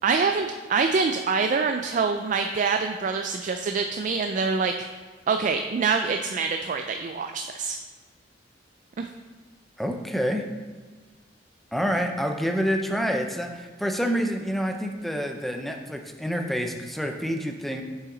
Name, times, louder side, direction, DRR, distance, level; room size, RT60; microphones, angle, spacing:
voice 1, 0.0-4.7 5.3-7.8 9.0-9.1, right 5 dB, 45° right, 6 dB, 0.3 m, -25 dB
voice 2, 9.8-10.4 11.7-17.8, equal, ahead, 4 dB, 0.6 m, -27 dB
7.0 x 5.7 x 3.8 m, 1.4 s
head